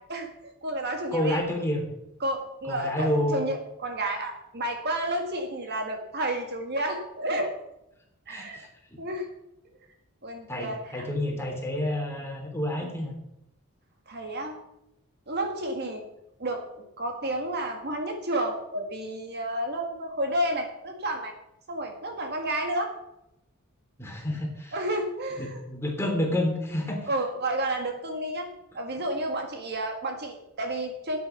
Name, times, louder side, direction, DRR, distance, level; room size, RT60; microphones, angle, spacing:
voice 1, 0.1-1.4 2.2-7.5 8.3-8.6 9.0-9.3 10.2-11.1 12.8-12.9 14.1-14.6 15.3-16.0 16.4-16.6 17.0-21.3 21.7-22.9 24.7-25.6 27.1-28.5 28.7-31.2, right 1 dB, 50° right, 4 dB, 1.8 m, -31 dB
voice 2, 1.1-1.8 2.7-3.4 8.3-9.0 10.5-13.2 24.0-24.7 25.4-27.1, left 1 dB, 10° left, 0 dB, 3.0 m, -29 dB
12.5 x 9.4 x 5.9 m, 0.83 s
head